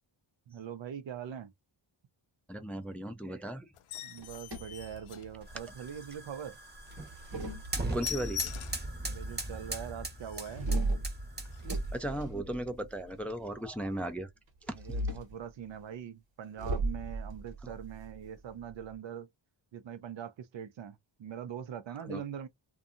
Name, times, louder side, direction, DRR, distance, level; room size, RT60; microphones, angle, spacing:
voice 1, 0.5-1.5 4.0-6.6 9.0-10.7 14.7-19.3 19.7-22.5, right 8 dB, 65° right, 0.6 m, -42 dB
voice 2, 2.5-3.7 7.9-8.5 11.9-14.3 14.7-14.8 17.6-17.7 22.0-22.2, right 1 dB, 5° left, 0.4 m, -36 dB
sound 1, 3.7-5.9 6.3-6.5 6.8-6.9 7.2-7.4 7.6-8.9 9.4-9.5 9.9-10.0 10.2-10.7 11.4-11.6, left 10 dB, 80° left, 0.6 m, -42 dB
sound 2, 4.2-5.6 6.9-8.3 10.5-13.1 14.7-15.4 16.6-18.9, right 2 dB, 50° right, 1.1 m, -36 dB
sound 3, 5.4-12.1, right 2 dB, 20° right, 0.8 m, -40 dB
2.6 x 2.2 x 2.5 m
cardioid pair, 80°, 49 cm